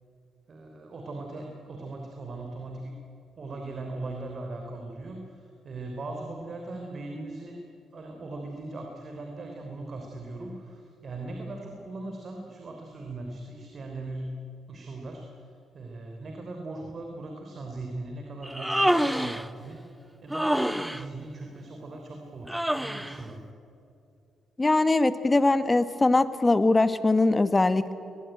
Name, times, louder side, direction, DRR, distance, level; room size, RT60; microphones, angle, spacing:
voice 1, 0.5-3.0 3.3-7.6 7.9-14.4 14.7-23.5, right 2 dB, 45° right, 2 dB, 3.4 m, -39 dB
Human voice, 18.4-19.5 20.3-21.0 22.5-23.2, equal, 5° right, 0.7 m, -26 dB
voice 2, 24.6-27.9, left 2 dB, 20° left, 12 dB, 1.2 m, -22 dB
23.0 x 20.5 x 9.1 m, 2.7 s
cardioid pair, 90°, 0 cm